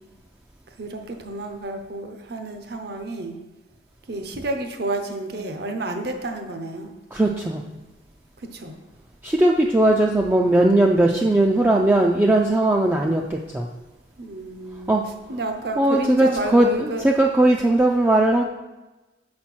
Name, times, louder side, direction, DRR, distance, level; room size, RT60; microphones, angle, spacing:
voice 1, 0.7-3.4 4.1-6.9 8.4-8.8 14.2-15.0 15.3-17.0, right 2 dB, 55° right, 5 dB, 0.8 m, -30 dB
voice 2, 7.1-7.6 9.2-13.7 14.9-15.0 15.8-18.4, right 1 dB, 10° right, 0 dB, 0.4 m, -18 dB
6.3 x 4.3 x 6.1 m, 1.1 s
head